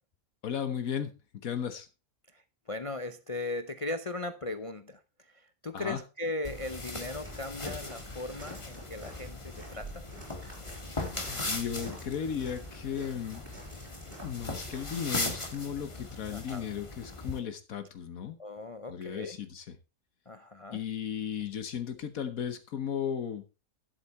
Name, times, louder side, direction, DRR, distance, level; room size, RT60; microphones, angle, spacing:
voice 1, 0.4-1.1 1.4-1.9 5.7-6.0 11.3-13.4 14.2-18.4 18.9-19.7 20.7-23.4, left 8 dB, 75° left, 1.5 m, -35 dB
voice 2, 2.7-5.0 5.3-10.0 16.3-16.7 18.4-19.4 20.3-20.8, left 2 dB, 45° left, 0.4 m, -38 dB
sound 1, 6.4-17.4, left 2 dB, 20° left, 1.5 m, -39 dB
Walk footsteps, 7.0-15.6, right 1 dB, 40° right, 4.8 m, -49 dB
11.0 x 8.2 x 4.2 m
omnidirectional pair, 1.5 m